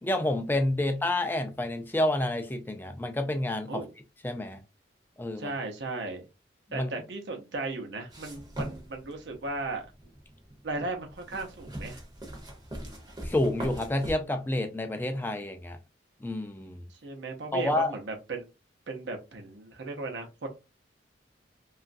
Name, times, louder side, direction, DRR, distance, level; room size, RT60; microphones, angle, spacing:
voice 1, 0.0-3.8 4.2-4.6 5.2-5.5 6.7-6.9 13.2-15.8 16.2-16.8 17.5-18.0, left 1 dB, 10° left, 0.3 m, -29 dB
voice 2, 5.4-6.2 6.7-9.8 10.6-12.0 16.9-18.5 18.9-20.5, right 3 dB, 70° right, 0.7 m, -36 dB
sound 1, 8.1-14.1, right 1 dB, 20° right, 0.7 m, -40 dB
2.9 x 2.4 x 2.5 m
head